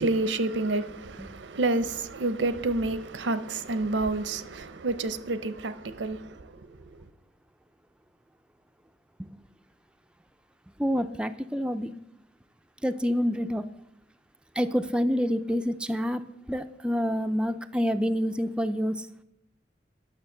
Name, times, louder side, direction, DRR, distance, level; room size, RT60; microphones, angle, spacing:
voice 1, 0.0-7.0, right 2 dB, 85° right, 0.7 m, -29 dB
voice 2, 10.8-11.9 12.8-13.6 14.6-19.1, equal, 5° right, 0.3 m, -27 dB
10.5 x 6.4 x 6.5 m
head